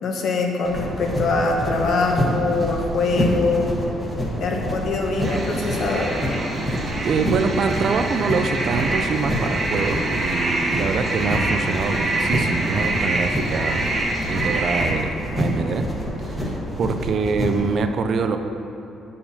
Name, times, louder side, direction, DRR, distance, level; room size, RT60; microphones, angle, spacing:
voice 1, 0.0-3.8 4.4-6.1, left 3 dB, 55° left, 1 dB, 0.8 m, -23 dB
sound 1, 0.6-17.7, equal, 15° left, 1.1 m, -27 dB
sound 2, 5.2-14.9, right 2 dB, 25° right, 0.9 m, -26 dB
voice 2, 7.0-13.9 14.3-15.9 16.2-18.4, right 5 dB, 50° right, 7 dB, 0.3 m, -25 dB
8.5 x 6.7 x 2.7 m, 2.8 s
cardioid pair, 135°, 0 cm